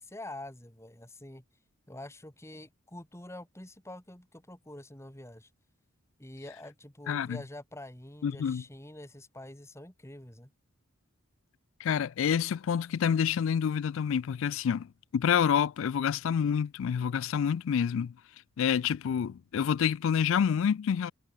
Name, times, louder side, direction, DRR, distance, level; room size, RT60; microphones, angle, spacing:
voice 1, 0.0-1.4 1.9-5.5 6.2-10.5, left 1 dB, 10° left, 2.4 m, -46 dB
voice 2, 7.1-7.4 8.2-8.6 11.8-18.2 18.6-21.1, left 7 dB, 60° left, 0.3 m, -28 dB
head